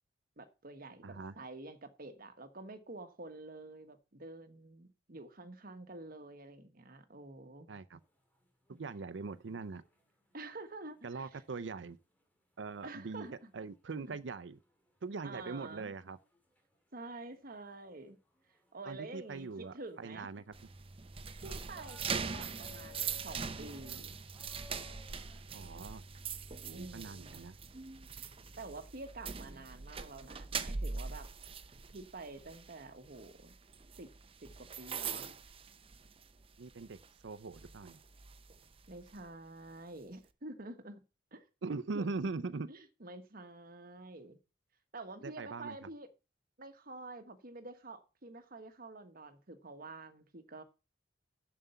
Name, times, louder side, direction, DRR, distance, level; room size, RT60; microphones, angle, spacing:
voice 1, 0.4-7.7 8.7-8.8 10.3-11.4 12.8-13.5 14.1-14.2 15.2-15.9 16.9-18.2 18.7-20.3 21.4-24.2 26.7-27.5 28.6-31.3 31.9-33.5 34.0-34.1 34.4-35.3 38.9-41.0 41.3-41.5 41.7-42.0 42.7-44.4 44.9-46.1 46.6-50.6, right 2 dB, 55° right, 1.4 m, -48 dB
voice 2, 1.0-1.3 7.7-8.0 8.8-9.8 11.0-12.0 12.6-13.3 13.5-14.6 15.0-16.2 18.9-20.5 25.5-26.0 26.6-27.6 36.6-38.0 41.6-42.7 45.2-45.9, right 4 dB, 80° right, 0.6 m, -41 dB
sound 1, 8.0-25.4, left 5 dB, 10° left, 2.3 m, -63 dB
sound 2, 20.5-36.5 36.8-37.1 37.5-39.2, right 5 dB, 30° right, 0.7 m, -42 dB
7.4 x 6.8 x 6.9 m
head